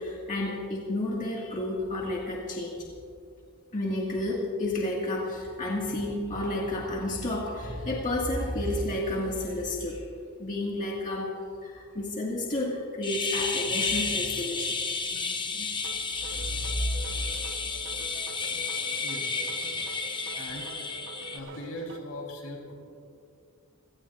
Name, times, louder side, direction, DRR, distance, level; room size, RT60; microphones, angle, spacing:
voice 1, 0.0-2.9 3.7-10.1 10.4-11.3 11.6-15.7 16.5-16.7 17.1-17.2, left 1 dB, 35° left, -3 dB, 1.9 m, -31 dB
sound 1, 13.0-21.4, left 4 dB, 20° left, 0.9 m, -32 dB
sound 2, 15.8-22.0, right 4 dB, 60° right, 1.1 m, -45 dB
voice 2, 19.0-19.5 19.7-19.9 20.4-22.7, left 1 dB, 75° left, 0 dB, 3.9 m, -41 dB
28.5 x 17.5 x 2.5 m, 2.5 s
head